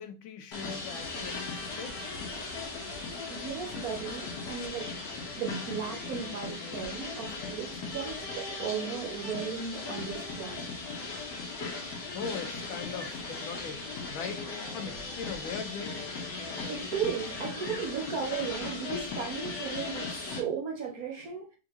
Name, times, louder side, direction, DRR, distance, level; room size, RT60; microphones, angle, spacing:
voice 1, 0.0-2.1 12.1-13.8 14.1-14.4 14.7-16.0, left 6 dB, 90° left, 7 dB, 1.5 m, -40 dB
sound 1, 0.5-20.4, left 3 dB, 65° left, 1.5 m, -38 dB
voice 2, 3.3-10.6 16.7-21.5, right 6 dB, 60° right, 0 dB, 1.0 m, -36 dB
3.7 x 3.5 x 2.9 m, 0.34 s
omnidirectional pair, 2.2 m